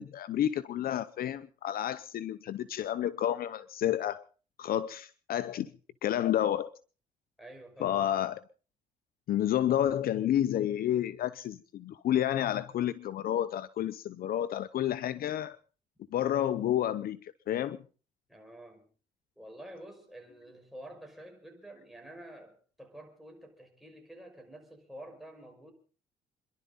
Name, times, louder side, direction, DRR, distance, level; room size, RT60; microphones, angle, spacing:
voice 1, 0.0-4.3 4.6-5.7 6.0-6.7 7.8-8.4 9.3-15.6 16.1-17.8, left 11 dB, 60° left, 0.8 m, -30 dB
voice 2, 7.4-8.1 18.3-18.9 19.4-25.7, right 1 dB, ahead, 5.7 m, -49 dB
27.5 x 11.5 x 4.0 m
cardioid pair, 95°, 17 cm